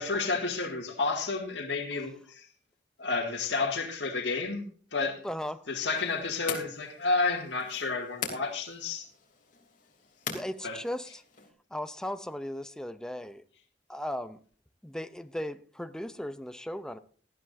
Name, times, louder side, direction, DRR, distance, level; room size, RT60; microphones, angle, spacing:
voice 1, 0.0-2.5 3.0-4.6 4.9-5.2 5.7-9.1 10.6-10.8, left 3 dB, 75° left, 2.0 m, -31 dB
voice 2, 5.2-5.6 10.3-11.2 11.7-13.4 13.9-14.4 14.8-17.0, left 1 dB, 5° left, 0.5 m, -37 dB
sound 1, 5.7-11.5, left 6 dB, 45° left, 3.0 m, -42 dB
18.5 x 12.5 x 2.6 m
head